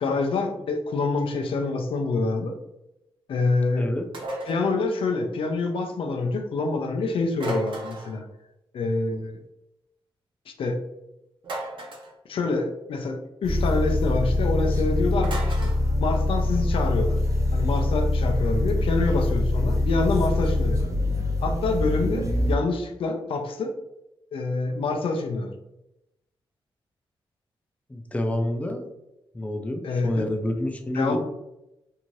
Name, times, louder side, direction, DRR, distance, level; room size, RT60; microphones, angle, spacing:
voice 1, 0.0-2.5 3.3-3.9 4.5-8.2 8.7-9.3 10.6-10.8 12.3-15.7 16.0-17.2 17.5-21.0 21.4-23.7 24.3-25.5 29.8-30.2 30.9-31.2, left 3 dB, 75° left, 3 dB, 0.5 m, -26 dB
sound 1, 4.1-4.6 7.4-8.2 11.4-12.1 15.2-15.8, right 1 dB, 65° right, 0.8 m, -34 dB
sound 2, 13.4-22.6, left 2 dB, 35° right, 0.6 m, -24 dB
voice 2, 27.9-28.8 29.3-31.2, left 1 dB, 15° left, 4 dB, 0.4 m, -28 dB
2.7 x 2.5 x 3.1 m, 0.89 s
cardioid pair, 80°, 9 cm